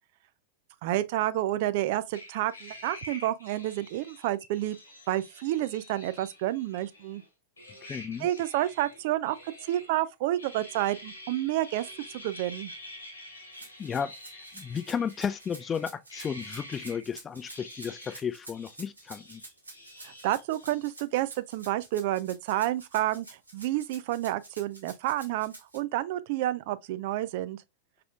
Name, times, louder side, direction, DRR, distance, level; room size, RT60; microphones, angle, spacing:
voice 1, 0.8-4.8 5.1-7.2 8.2-11.9 12.1-12.7 20.0-23.3 23.5-27.6, right 14 dB, 50° right, 0.3 m, -29 dB
sound 1, 2.1-7.3 7.6-10.0 10.4-17.0 17.4-18.3 18.5-20.9, left 1 dB, 75° left, 1.6 m, -47 dB
voice 2, 7.8-8.3 13.8-19.4, left 7 dB, 20° left, 0.4 m, -34 dB
Rattle (instrument), 13.5-25.8, right 2 dB, 85° right, 1.4 m, -49 dB
4.9 x 3.4 x 2.3 m
figure-of-eight pair, 90°, 0 cm